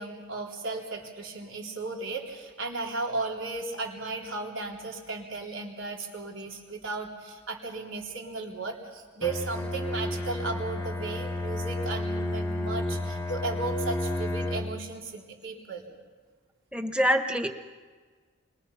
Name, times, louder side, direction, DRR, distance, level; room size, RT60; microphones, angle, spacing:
voice 1, 0.0-15.9, right 3 dB, 75° right, 0 dB, 3.8 m, -35 dB
Bowed string instrument, 9.2-14.9, left 1 dB, 10° left, 0.9 m, -31 dB
voice 2, 16.7-17.5, equal, 5° right, 6 dB, 1.2 m, -25 dB
29.5 x 23.5 x 5.7 m, 1.5 s
head